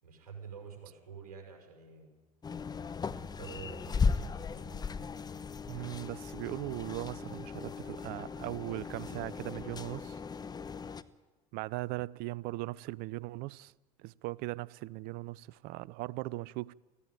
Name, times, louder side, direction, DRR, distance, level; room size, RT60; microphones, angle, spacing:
voice 1, 0.0-2.1 3.1-4.9, right 6 dB, 75° right, 5.4 m, -49 dB
sound 1, 2.4-11.0, left 5 dB, 20° left, 0.9 m, -37 dB
voice 2, 5.7-10.2 11.5-13.7 14.0-16.7, right 20 dB, 50° right, 0.5 m, -39 dB
18.5 x 15.5 x 9.1 m
hypercardioid pair, 75°, 20 cm